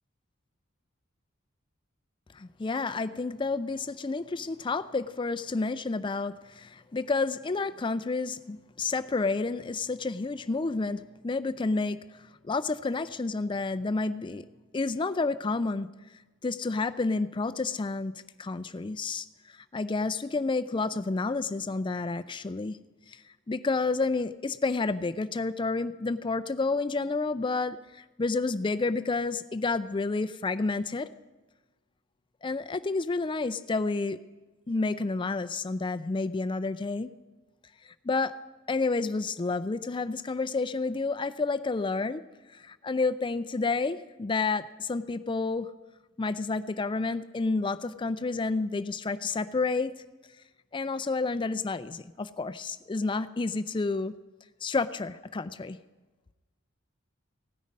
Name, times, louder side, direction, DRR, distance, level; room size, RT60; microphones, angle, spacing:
voice 1, 2.3-14.5 14.7-15.9 16.4-18.1 18.4-19.3 19.7-22.8 23.1-23.2 23.5-31.1 32.4-34.2 34.7-37.1 37.8-38.3 38.7-42.2 42.5-45.7 46.2-49.9 50.7-54.1 54.6-55.8, left 3 dB, 25° left, 12 dB, 0.4 m, -30 dB
16.5 x 9.3 x 5.3 m, 1.2 s
head